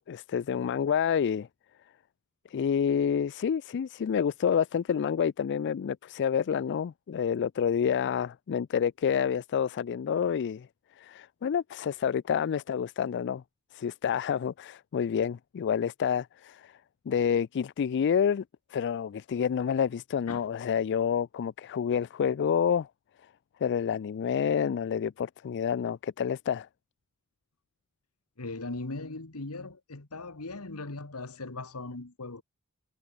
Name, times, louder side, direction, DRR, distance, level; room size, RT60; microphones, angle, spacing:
voice 1, 0.1-1.5 2.5-10.7 11.0-13.4 13.7-16.8 17.1-18.4 18.7-22.9 23.6-26.7, left 7 dB, 55° left, 0.3 m, -28 dB
voice 2, 28.4-32.4, left 2 dB, 85° left, 1.8 m, -39 dB
head